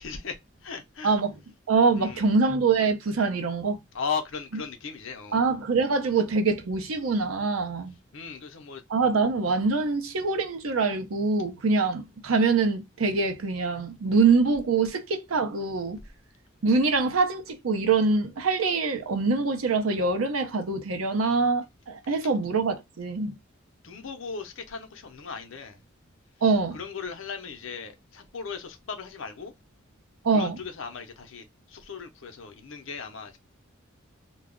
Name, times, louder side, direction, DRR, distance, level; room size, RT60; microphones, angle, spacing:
voice 1, 0.0-1.2 1.9-2.3 3.9-5.4 8.1-8.8 22.1-22.2 23.8-25.8 26.7-29.5 30.3-33.4, left 5 dB, 65° left, 0.6 m, -37 dB
voice 2, 1.7-3.8 5.3-8.0 8.9-16.0 16.6-23.4 26.4-26.8 30.2-30.6, right 4 dB, 85° right, 0.6 m, -24 dB
2.3 x 2.0 x 3.6 m
head